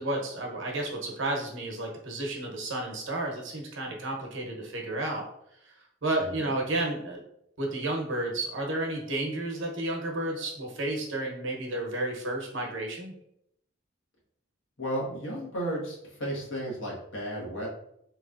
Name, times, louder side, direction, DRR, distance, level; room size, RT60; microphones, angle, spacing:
voice 1, 0.0-5.3 5.6-5.7 6.0-7.2 7.6-13.1, right 2 dB, 70° right, 1 dB, 0.9 m, -32 dB
voice 2, 6.2-6.5 14.8-17.7, right 1 dB, 70° left, -4 dB, 1.4 m, -34 dB
3.9 x 3.1 x 2.5 m, 0.75 s
head